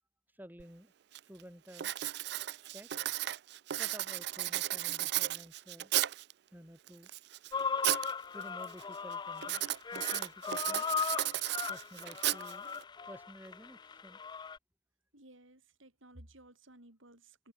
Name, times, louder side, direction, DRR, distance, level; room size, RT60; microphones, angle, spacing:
voice 1, 0.3-0.9 1.3-1.9 2.7-2.9 3.8-5.9 6.5-7.1 8.3-9.6 9.9-10.9 11.7-12.7 13.1-14.2, equal, 10° right, 3.8 m, -52 dB
Writing, 0.6-0.7 1.1-1.4 1.7-6.3 6.9-8.1 8.4-8.8 9.4-12.8, right 15 dB, 55° right, 0.3 m, -34 dB
sound 1, 7.5-14.6, left 6 dB, 20° left, 0.3 m, -38 dB
voice 2, 15.1-17.5, right 1 dB, 75° right, 7.0 m, -57 dB
head